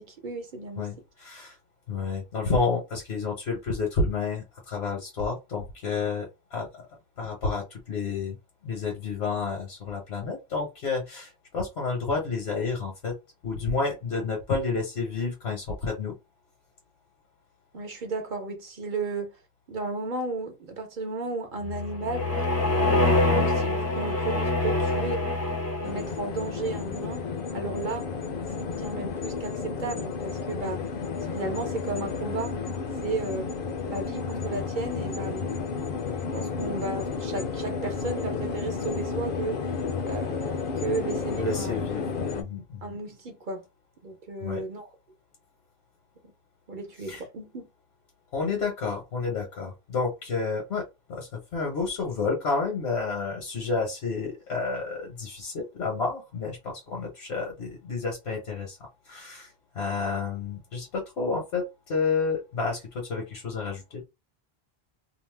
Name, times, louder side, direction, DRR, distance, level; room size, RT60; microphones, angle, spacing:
voice 1, 0.0-0.9 17.7-19.3 19.7-22.3 22.8-25.3 25.8-27.2 27.5-28.1 28.6-30.8 31.3-32.6 33.0-33.5 33.8-35.6 36.1-39.6 40.1-41.7 42.8-43.7 44.0-44.8 46.7-47.7, right 3 dB, 55° right, 0.8 m, -34 dB
voice 2, 0.8-1.6 1.9-6.9 7.2-8.4 8.6-13.2 13.4-16.1 41.3-42.1 42.3-42.9 44.4-44.7 47.1-47.2 48.3-58.8 59.1-64.0, left 4 dB, 80° left, 1.2 m, -30 dB
sound 1, 21.6-26.2, left 2 dB, 25° left, 0.4 m, -25 dB
sound 2, 25.8-42.4, left 5 dB, 65° left, 0.7 m, -32 dB
2.7 x 2.0 x 3.2 m
omnidirectional pair, 1.0 m